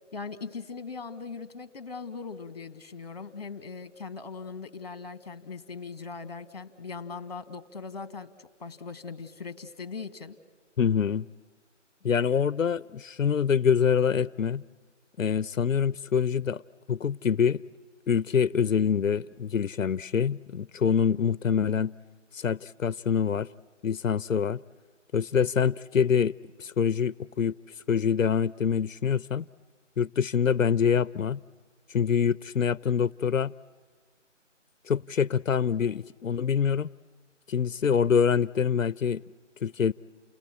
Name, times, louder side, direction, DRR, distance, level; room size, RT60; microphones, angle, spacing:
voice 1, 0.1-10.4, left 5 dB, 30° left, 13 dB, 1.5 m, -40 dB
voice 2, 10.8-11.3 12.0-14.6 15.2-16.6 16.9-17.6 18.1-21.9 22.3-23.5 23.8-24.6 25.1-26.3 26.6-27.6 27.9-29.4 30.0-31.4 31.9-33.5 34.9-36.9 37.5-39.2 39.6-39.9, left 7 dB, 90° left, 20 dB, 0.6 m, -25 dB
29.0 x 18.0 x 8.4 m, 1.5 s
figure-of-eight pair, 165°, 38 cm